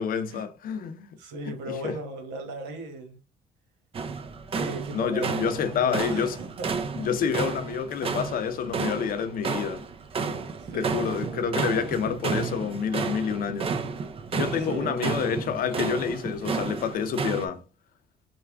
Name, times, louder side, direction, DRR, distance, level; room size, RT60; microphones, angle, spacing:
voice 1, 0.0-1.1 1.7-2.0 4.9-6.4 7.0-9.8 10.7-13.7 14.3-17.6, left 7 dB, 60° left, 0.6 m, -28 dB
voice 2, 1.2-3.2 4.5-7.1 10.6-11.7 14.6-15.7, right 2 dB, 85° right, 1.2 m, -37 dB
sound 1, 3.9-17.5, right 5 dB, 35° right, 0.5 m, -32 dB
3.4 x 2.3 x 3.3 m
cardioid pair, 110°, 17 cm